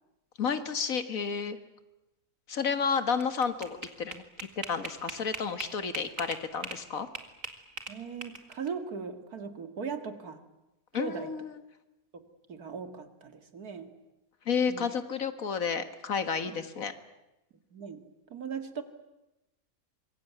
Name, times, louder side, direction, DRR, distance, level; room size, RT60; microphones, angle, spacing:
voice 1, 0.4-1.6 2.5-4.2 4.6-7.1 10.9-11.5 14.5-16.9, left 6 dB, 65° left, 11 dB, 2.0 m, -31 dB
sound 1, 3.0-6.8 7.1-8.7, right 4 dB, 60° right, 2.6 m, -39 dB
voice 2, 7.9-10.4 11.0-11.3 12.1-13.9 14.7-14.9 16.5-16.6 17.7-18.0 18.3-18.8, right 5 dB, 90° right, 9 dB, 2.6 m, -39 dB
25.5 x 22.0 x 9.4 m, 0.97 s
omnidirectional pair, 1.5 m